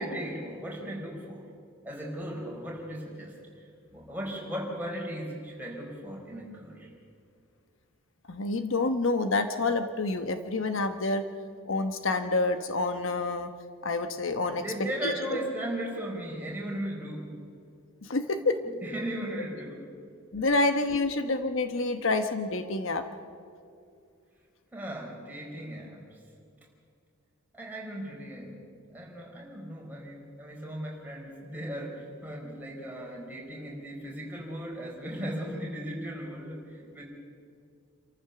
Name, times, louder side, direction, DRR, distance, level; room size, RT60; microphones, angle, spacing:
voice 1, 0.0-1.4 1.8-3.7 3.9-6.9 14.3-17.3 18.6-19.8 20.8-21.0 24.7-26.2 27.5-28.6 28.9-37.1, equal, 10° right, -2 dB, 4.4 m, -37 dB
voice 2, 8.3-11.2 11.7-13.5 13.8-14.6 15.0-15.1 18.0-18.6 20.3-23.0, left 3 dB, 65° left, 8 dB, 1.1 m, -28 dB
27.5 x 14.0 x 6.9 m, 2.4 s
head